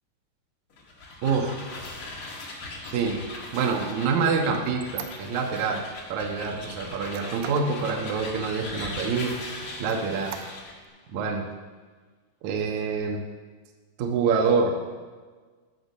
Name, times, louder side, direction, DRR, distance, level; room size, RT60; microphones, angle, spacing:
sound 1, 0.7-10.8, left 2 dB, 55° left, 1.5 m, -39 dB
voice 1, 1.2-1.5 2.9-3.2 3.5-5.8 6.1-9.4 9.8-10.4 11.1-11.5 12.4-13.2 14.0-14.7, right 5 dB, 65° right, 2 dB, 2.0 m, -26 dB
Squeak, 2.7-5.8 6.2-7.8 8.3-8.4 8.8-9.4 9.8-10.9, right 9 dB, 80° right, 2.8 m, -43 dB
14.0 x 6.6 x 5.5 m, 1.4 s
omnidirectional pair, 4.9 m